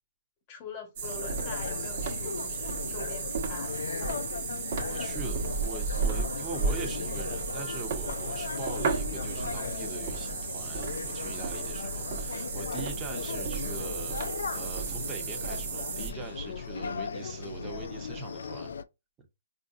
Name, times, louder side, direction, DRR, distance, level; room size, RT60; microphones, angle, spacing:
voice 1, 0.5-4.2 11.8-11.9, left 4 dB, 35° left, 1.3 m, -44 dB
sound 1, 1.0-18.8, left 5 dB, 75° left, 0.4 m, -37 dB
sound 2, 1.0-16.1, right 5 dB, 50° right, 1.2 m, -34 dB
voice 2, 4.9-18.7, right 5 dB, 20° right, 1.0 m, -42 dB
4.4 x 2.6 x 2.5 m
hypercardioid pair, 145°, 0 cm